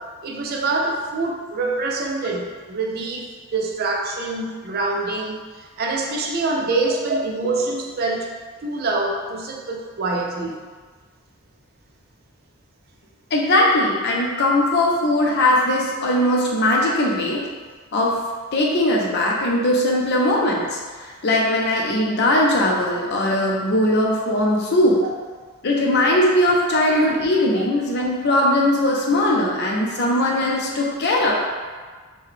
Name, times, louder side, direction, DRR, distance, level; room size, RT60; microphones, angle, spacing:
voice 1, 0.2-8.3 8.6-10.6 26.4-26.5 27.5-27.6, right 3 dB, 45° right, 0 dB, 0.4 m, -25 dB
voice 2, 13.3-17.4 17.9-18.1 18.5-25.0 25.6-31.3, left 1 dB, 50° left, -2 dB, 0.5 m, -19 dB
3.7 x 2.2 x 3.2 m, 1.5 s
head